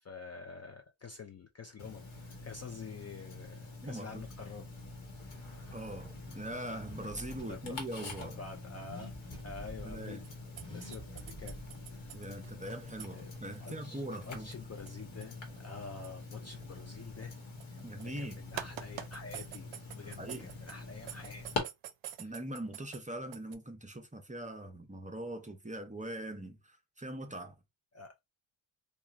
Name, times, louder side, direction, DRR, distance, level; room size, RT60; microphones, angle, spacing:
voice 1, 0.0-4.6 7.4-7.8 8.1-9.1 9.4-10.2 10.7-11.6 11.9-12.1 13.1-13.3 13.6-17.4 18.2-21.5 27.9-28.1, left 5 dB, 35° left, 0.4 m, -47 dB
Tick-tock, 1.8-21.6, left 3 dB, 70° left, 1.2 m, -45 dB
voice 2, 3.8-4.2 5.7-8.4 9.8-10.2 12.1-14.5 17.8-18.4 20.0-20.5 22.2-27.5, right 1 dB, 15° right, 0.6 m, -42 dB
Car / Accelerating revving vroom, 4.2-13.3, equal, 10° left, 1.0 m, -51 dB
sound 1, 10.2-18.2 18.6-20.8 21.1-23.0 23.3-23.6, right 11 dB, 65° right, 0.5 m, -45 dB
3.0 x 2.4 x 2.4 m
wide cardioid pair, 110°, 49 cm